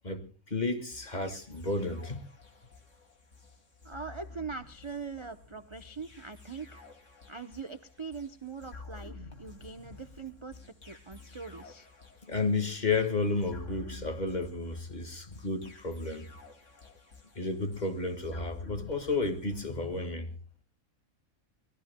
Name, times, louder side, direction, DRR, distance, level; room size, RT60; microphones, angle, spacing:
voice 1, 0.0-2.2 12.2-16.3 17.4-20.3, left 3 dB, 30° left, 1.9 m, -32 dB
sound 1, 0.9-20.1, left 3 dB, 60° left, 3.0 m, -51 dB
voice 2, 3.8-6.9 7.3-10.6 10.9-11.9, right 5 dB, 30° right, 0.6 m, -42 dB
24.5 x 19.0 x 2.2 m
omnidirectional pair, 1.5 m